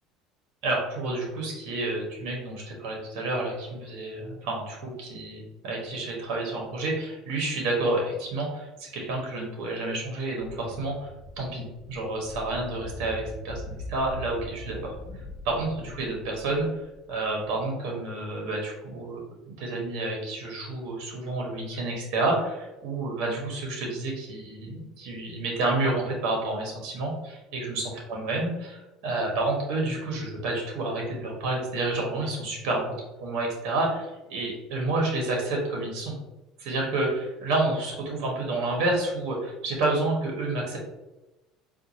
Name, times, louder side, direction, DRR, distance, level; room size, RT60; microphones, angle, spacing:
voice 1, 0.6-11.1 11.4-14.9 15.4-16.7 17.1-19.2 19.5-32.9 33.2-36.1 36.6-40.8, right 2 dB, 70° right, -1 dB, 1.2 m, -29 dB
sound 1, 10.4-17.5, left 1 dB, 40° left, 0.7 m, -42 dB
4.5 x 2.5 x 2.7 m, 1.0 s
supercardioid pair, 100°, 0 cm